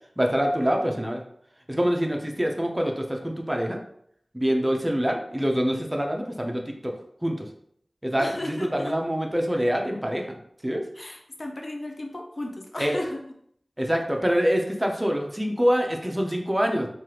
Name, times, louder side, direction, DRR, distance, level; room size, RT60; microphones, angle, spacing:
voice 1, 0.2-1.2 1.7-3.8 4.3-7.0 7.2-7.5 8.0-10.3 10.6-10.9 12.8-13.0 13.8-16.9, equal, 15° right, 2 dB, 0.5 m, -25 dB
voice 2, 8.2-8.9 11.0-13.2, left 1 dB, 45° left, 2 dB, 0.5 m, -34 dB
3.2 x 2.3 x 2.9 m, 0.67 s
wide cardioid pair, 60°, 0 cm